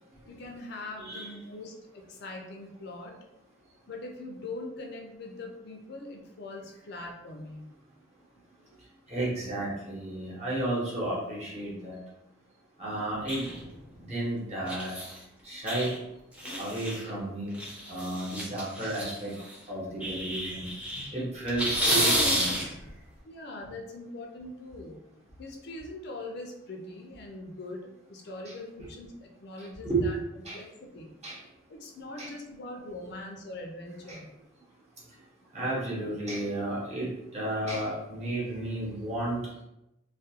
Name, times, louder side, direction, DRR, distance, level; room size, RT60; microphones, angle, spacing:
voice 1, 0.3-3.2 3.9-7.7 20.9-21.1 23.2-25.0 25.4-30.2 30.5-31.1 31.7-34.3, left 2 dB, 55° left, 1 dB, 0.4 m, -42 dB
voice 2, 1.0-1.3 9.1-12.0 12.8-13.5 14.0-14.9 15.4-15.9 16.6-17.6 17.9-19.3 19.7-20.6 21.1-22.6 28.4-28.5 29.8-30.1 30.4-30.6 31.2-31.4 32.2-32.3 34.1-34.2 35.5-39.4, right 2 dB, 35° right, -6 dB, 0.9 m, -32 dB
sound 1, 13.3-13.8 14.7-15.2 15.7-15.9 16.4-17.1 17.5-19.5 20.0-21.1 21.4-22.9, equal, 5° right, 0.6 m, -30 dB
2.4 x 2.2 x 2.7 m, 0.86 s
head